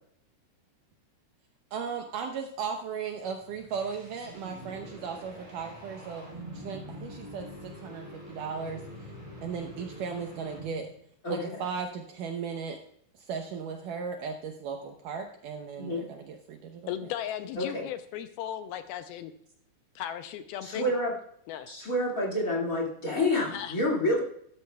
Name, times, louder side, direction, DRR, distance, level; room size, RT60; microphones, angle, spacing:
voice 1, 1.7-6.3 6.5-9.1 9.4-10.9 11.3-12.8 13.1-16.9, right 6 dB, 75° right, 4 dB, 2.0 m, -36 dB
sound 1, 3.2-11.0, equal, 10° right, 4.6 m, -45 dB
voice 2, 11.2-11.6 15.8-16.0 17.6-17.8 20.6-21.1 21.7-24.2, left 1 dB, 30° left, -3 dB, 1.7 m, -28 dB
voice 3, 16.9-19.3 20.0-20.9 21.5-21.7 23.4-23.8, left 11 dB, 80° left, 9 dB, 2.4 m, -36 dB
13.0 x 12.5 x 2.3 m, 0.68 s
omnidirectional pair, 4.6 m